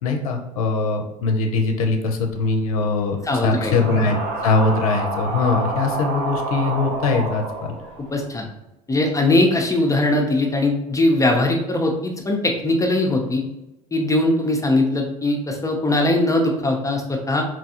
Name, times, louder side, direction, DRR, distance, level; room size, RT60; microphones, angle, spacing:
voice 1, 0.0-4.2 4.4-7.7, left 3 dB, 80° left, 3 dB, 0.5 m, -21 dB
sound 1, 2.3-8.4, right 2 dB, 60° right, 0.7 m, -29 dB
voice 2, 3.2-3.8 8.1-8.5 8.9-13.4 13.9-17.4, left 2 dB, 20° left, 2 dB, 0.6 m, -20 dB
4.2 x 2.3 x 2.8 m, 0.94 s
hypercardioid pair, 70°, 18 cm